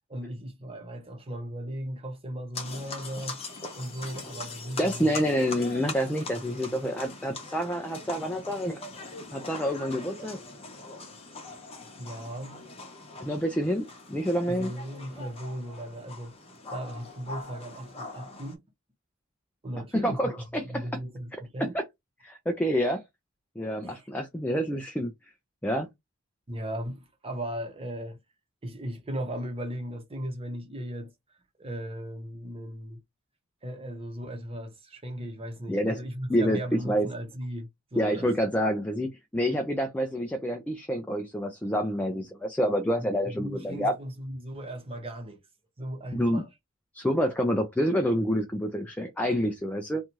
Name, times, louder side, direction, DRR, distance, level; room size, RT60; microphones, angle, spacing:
voice 1, 0.1-3.4 3.7-5.2 12.0-12.6 14.5-16.3 16.7-18.6 19.6-20.4 20.6-21.8 23.8-24.1 26.5-28.2 28.6-31.1 31.6-33.0 33.6-38.3 43.4-45.4 45.8-46.5, equal, 25° right, 0.8 m, -37 dB
sound 1, 2.5-18.6, left 3 dB, 30° left, 0.8 m, -42 dB
voice 2, 4.8-8.8 9.3-10.4 13.2-14.7 19.9-21.0 21.6-21.8 22.2-23.0 23.6-25.1 25.6-25.9 35.7-36.0 36.3-37.1 38.0-43.9 46.1-46.4 46.9-50.0, equal, 5° left, 0.3 m, -28 dB
2.7 x 2.3 x 2.9 m
head